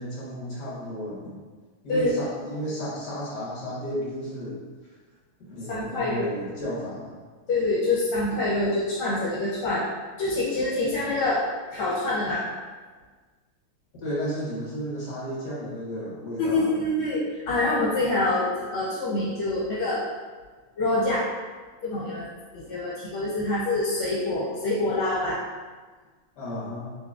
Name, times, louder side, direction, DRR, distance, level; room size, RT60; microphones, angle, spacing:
voice 1, 0.0-1.4 1.8-4.6 5.4-7.2 14.0-16.8 26.4-26.9, equal, 55° left, -8 dB, 1.6 m, -33 dB
voice 2, 5.7-6.3 7.5-9.8 10.2-11.4 11.7-12.5 16.4-20.0 20.8-21.3 21.8-22.2 22.5-25.4, left 2 dB, 75° left, -7 dB, 1.6 m, -26 dB
4.0 x 3.1 x 2.3 m, 1.4 s
omnidirectional pair, 2.3 m